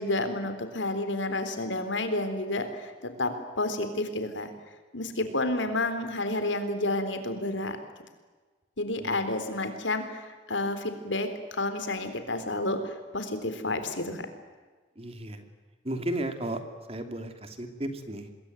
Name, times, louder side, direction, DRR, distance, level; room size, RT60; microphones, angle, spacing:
voice 1, 0.0-4.5 4.9-7.8 8.8-14.3, left 2 dB, 80° left, 9 dB, 3.8 m, -30 dB
voice 2, 15.0-15.4 15.8-16.6 16.9-18.3, right 1 dB, 30° right, 7 dB, 2.6 m, -34 dB
26.0 x 22.0 x 9.4 m, 1.3 s
head